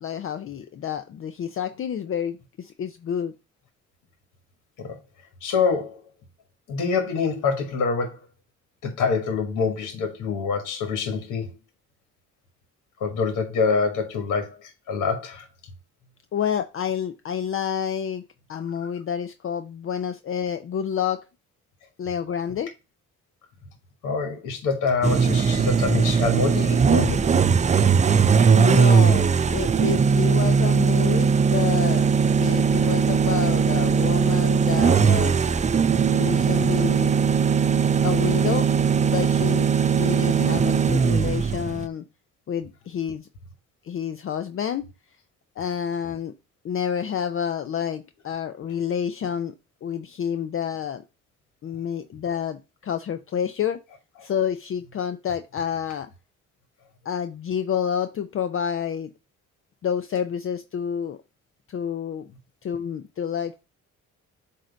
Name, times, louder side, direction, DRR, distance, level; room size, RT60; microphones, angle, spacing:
voice 1, 0.0-3.3 16.3-18.2 18.5-21.2 22.0-22.7 28.3-32.0 32.3-35.4 36.1-37.1 38.0-38.7 39.0-42.0 42.5-43.3 43.8-44.8 45.6-46.3 46.6-49.5 49.8-51.0 51.6-53.8 54.2-56.1 57.1-59.1 59.8-61.2 61.7-62.3 62.6-63.6, left 8 dB, 45° left, 0.5 m, -29 dB
voice 2, 5.4-6.0 6.7-8.2 8.8-11.5 13.0-15.5 24.0-27.2, left 5 dB, 80° left, 1.4 m, -25 dB
sound 1, 25.0-41.9, right 6 dB, 25° right, 0.4 m, -19 dB
7.6 x 2.6 x 5.1 m
cardioid pair, 90°, 30 cm